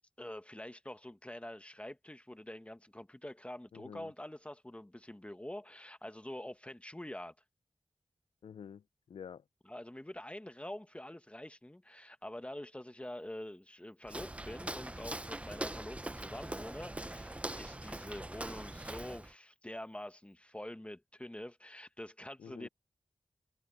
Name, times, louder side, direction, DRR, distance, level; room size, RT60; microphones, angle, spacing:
voice 1, 0.2-7.3 9.6-22.7, left 1 dB, 15° left, 1.4 m, -46 dB
voice 2, 3.7-4.1 8.4-9.4 22.4-22.7, left 7 dB, 85° left, 0.4 m, -49 dB
Walk footsteps, 14.0-19.3, right 1 dB, 15° right, 0.7 m, -42 dB
cardioid pair, 60°, 9 cm